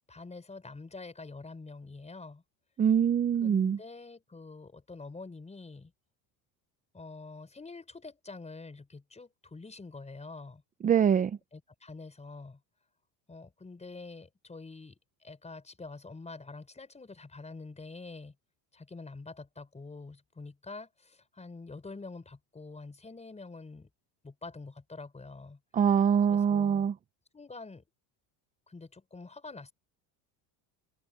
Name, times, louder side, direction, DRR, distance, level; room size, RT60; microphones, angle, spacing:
voice 1, 0.1-2.4 3.4-5.9 6.9-10.6 11.5-12.6 13.3-18.3 18.7-23.9 24.2-25.6 26.3-26.9 27.3-27.8 28.7-29.7, left 3 dB, 15° left, 5.0 m, -46 dB
voice 2, 2.8-3.8 10.8-11.4 25.7-26.9, right 8 dB, 20° right, 0.4 m, -24 dB
cardioid pair, 130°, 48 cm